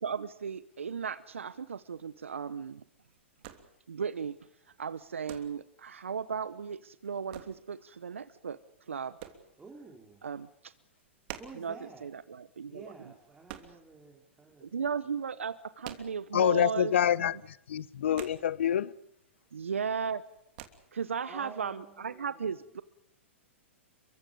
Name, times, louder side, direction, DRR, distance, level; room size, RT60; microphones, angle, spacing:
voice 1, 0.0-2.8 3.9-4.4 4.8-8.6 8.9-9.2 10.2-10.7 11.5-13.1 14.6-16.9 17.2-17.3 19.5-20.2 20.9-22.8, right 6 dB, 80° right, 0.9 m, -36 dB
sound 1, 1.6-14.5 14.8-16.7 17.0-17.2 17.4-19.0 19.3-19.8 20.1-20.7, right 12 dB, 50° right, 3.0 m, -49 dB
voice 2, 9.6-10.2 11.4-12.1 12.7-14.7 21.3-22.5, right 4 dB, 10° right, 3.8 m, -50 dB
voice 3, 16.3-18.9, left 10 dB, 70° left, 1.0 m, -27 dB
29.5 x 23.5 x 5.3 m
hypercardioid pair, 110°, 7 cm